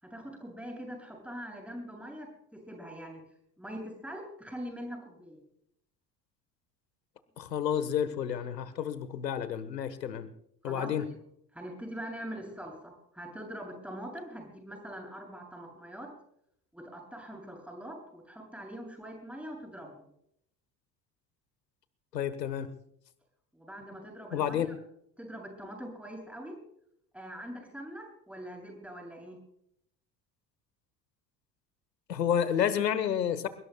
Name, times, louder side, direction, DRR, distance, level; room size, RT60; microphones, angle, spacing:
voice 1, 0.1-3.2 3.6-5.4 10.6-11.1 11.5-16.1 16.7-20.1 23.5-24.7 25.2-26.6 27.1-29.4, equal, 5° right, 0 dB, 7.8 m, -43 dB
voice 2, 7.4-10.3 10.6-11.0 22.1-22.7 24.3-24.7 32.1-33.5, left 9 dB, 85° left, 14 dB, 1.4 m, -30 dB
23.5 x 22.0 x 2.3 m, 0.71 s
figure-of-eight pair, 60°, 48 cm